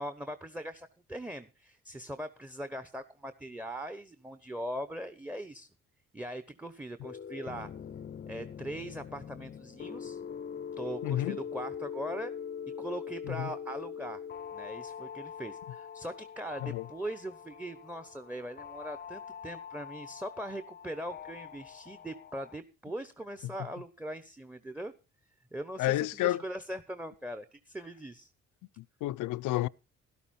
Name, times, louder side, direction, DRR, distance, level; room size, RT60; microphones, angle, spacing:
voice 1, 0.0-5.7 6.1-7.7 8.3-10.2 10.8-12.3 12.6-14.2 14.5-24.9 25.5-28.3, right 1 dB, 5° right, 1.0 m, -40 dB
sound 1, 7.0-22.6, left 7 dB, 35° left, 0.6 m, -43 dB
voice 2, 11.0-11.4 13.3-13.5 16.6-16.8 25.8-26.4 28.8-29.7, left 16 dB, 85° left, 0.5 m, -30 dB
12.5 x 12.5 x 4.3 m
cardioid pair, 90°, 30 cm